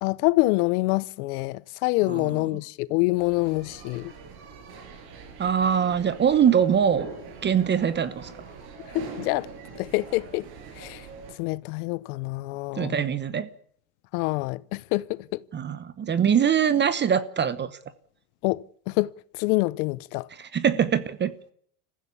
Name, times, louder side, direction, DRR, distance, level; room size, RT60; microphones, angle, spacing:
voice 1, 0.0-4.1 8.9-9.5 9.8-10.5 10.8-11.1 11.4-12.9 14.1-15.4 18.4-20.3, left 22 dB, 75° left, 0.8 m, -26 dB
voice 2, 2.1-2.4 5.4-7.1 7.4-8.3 12.7-13.5 15.5-17.8 20.3-21.5, right 8 dB, 25° right, 1.0 m, -23 dB
sound 1, 3.1-11.3, right 4 dB, 55° right, 6.8 m, -43 dB
22.5 x 15.0 x 8.4 m
supercardioid pair, 140°, 45 cm